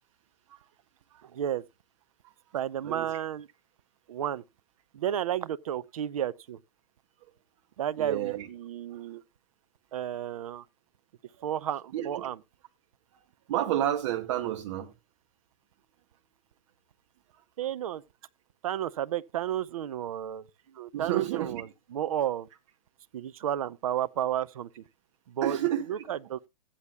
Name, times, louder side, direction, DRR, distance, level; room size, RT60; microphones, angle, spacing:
voice 1, 1.2-1.6 2.5-3.5 4.1-4.4 4.9-6.6 7.8-9.2 9.9-10.6 11.4-12.4 17.6-18.0 18.6-20.4 20.7-22.5 23.1-24.8 25.3-26.5, right 10 dB, 75° right, 0.6 m, -32 dB
voice 2, 8.0-8.5 11.9-12.3 13.5-14.9 20.9-21.6 25.4-25.9, right 12 dB, 55° right, 1.9 m, -30 dB
14.5 x 9.9 x 2.2 m
hypercardioid pair, 130°, 18 cm